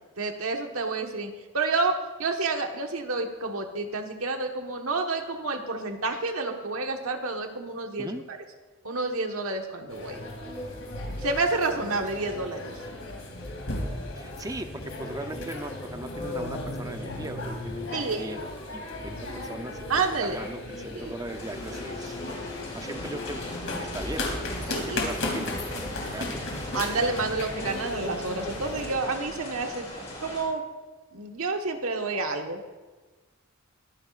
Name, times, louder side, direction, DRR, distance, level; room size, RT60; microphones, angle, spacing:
voice 1, 0.2-1.9 2.2-8.4 8.8-10.2 11.2-12.7 17.9-18.3 19.9-20.4 21.0-21.1 24.7-25.1 26.7-29.8 30.2-30.6 31.1-32.6, right 3 dB, 90° right, 3 dB, 1.4 m, -29 dB
sound 1, 9.9-28.9, left 2 dB, 70° left, 2.9 m, -35 dB
voice 2, 14.1-18.4 18.7-22.2 22.7-23.5 23.8-24.2 24.8-26.4, right 1 dB, 15° right, 7 dB, 0.6 m, -39 dB
sound 2, 21.3-30.4, left 1 dB, 30° left, 4.3 m, -41 dB
21.5 x 10.0 x 2.5 m, 1.3 s
head